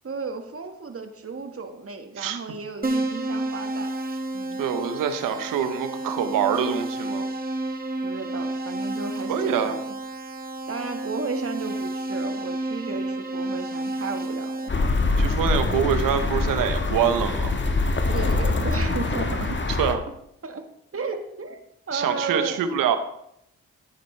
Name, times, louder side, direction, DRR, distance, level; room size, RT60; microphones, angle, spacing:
voice 1, 0.0-3.9 4.3-4.6 8.0-10.0 10.7-14.6 18.1-19.6 20.4-20.6 20.9-21.6 21.9-22.6, right 4 dB, 45° right, 6 dB, 1.7 m, -33 dB
Keyboard (musical), 2.8-14.7, right 2 dB, 30° right, 2.0 m, -30 dB
voice 2, 4.6-7.2 9.3-9.8 15.2-17.5 19.8-20.0 21.9-23.0, right 8 dB, 85° right, 9 dB, 1.1 m, -25 dB
sound 1, 14.7-20.0, left 3 dB, 35° left, 1.6 m, -24 dB
13.5 x 9.1 x 3.4 m, 0.75 s
supercardioid pair, 45°, 32 cm